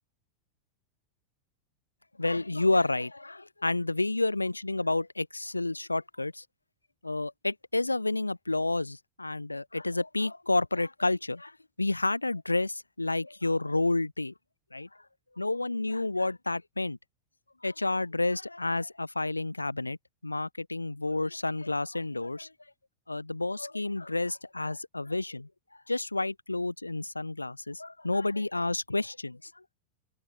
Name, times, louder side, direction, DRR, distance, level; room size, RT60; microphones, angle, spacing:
voice 1, 2.2-6.4 7.0-14.3 14.7-14.9 15.4-17.0 17.6-20.0 20.2-22.5 23.1-25.5 25.9-29.6, left 2 dB, 85° left, 1.1 m, -30 dB
open air
figure-of-eight pair, 90°, 0 cm